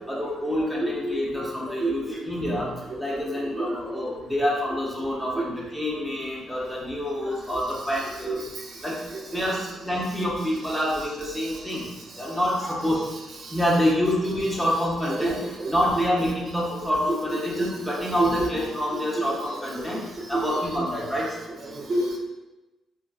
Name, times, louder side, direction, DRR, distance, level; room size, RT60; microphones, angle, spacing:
voice 1, 0.1-8.4 8.8-9.0 9.3-11.9 12.1-13.0 13.5-20.0 20.3-21.4, equal, 5° left, -5 dB, 0.8 m, -27 dB
voice 2, 0.8-1.2 1.8-1.9 2.9-3.0 3.6-3.8 4.7-4.8 8.2-8.4 9.3-9.4 15.1-16.0 17.1-17.2 17.6-17.7 18.2-18.5 18.9-19.0 20.3-20.9 21.7-22.2, right 2 dB, 50° right, -1 dB, 0.6 m, -28 dB
3.8 x 2.4 x 2.3 m, 1.0 s
cardioid pair, 90°, 0 cm